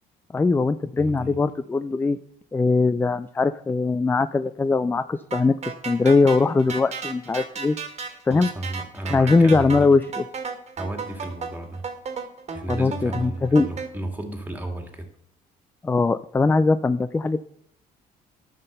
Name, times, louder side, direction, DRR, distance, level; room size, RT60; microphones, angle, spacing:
voice 1, 0.3-2.2 2.5-5.6 5.9-7.8 8.3-8.5 9.1-10.0 12.7-13.7 15.8-17.4, left 3 dB, 10° left, 13 dB, 0.3 m, -20 dB
voice 2, 1.0-1.4 8.3-9.9 10.8-11.8 12.5-15.1, right 1 dB, 10° right, 4 dB, 2.2 m, -33 dB
sound 1, 5.3-13.9, right 5 dB, 40° right, 1.7 m, -34 dB
11.5 x 5.8 x 6.7 m, 0.70 s
cardioid pair, 110°, 17 cm